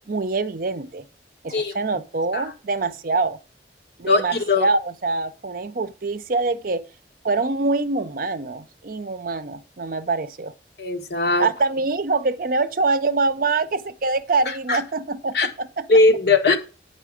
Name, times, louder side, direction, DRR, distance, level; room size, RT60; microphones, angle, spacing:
voice 1, 0.1-1.0 1.4-3.4 4.0-6.8 7.2-10.5 11.4-15.9, right 3 dB, 50° right, 0.6 m, -24 dB
voice 2, 4.1-4.6 10.8-11.5 14.7-14.8 15.3-15.5 15.9-16.6, left 3 dB, 70° left, 1.3 m, -19 dB
8.6 x 5.6 x 4.8 m
head